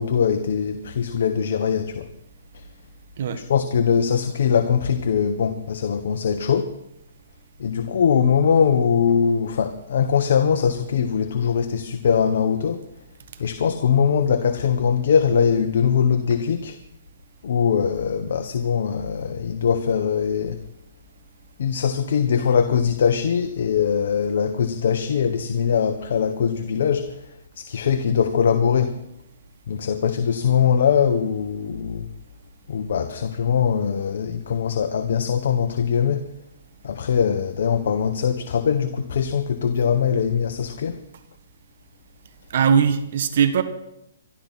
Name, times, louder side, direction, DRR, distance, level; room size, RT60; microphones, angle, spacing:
voice 1, 0.0-2.1 2.5-2.6 3.4-6.7 7.6-12.8 13.4-16.8 17.4-20.6 21.6-27.3 27.6-29.0 29.7-32.1 32.7-36.3 36.8-41.0, left 7 dB, 65° left, 7 dB, 1.3 m, -21 dB
voice 2, 42.5-43.6, right 7 dB, 60° right, 10 dB, 1.7 m, -19 dB
24.0 x 12.5 x 4.3 m, 0.83 s
hypercardioid pair, 150°, 0 cm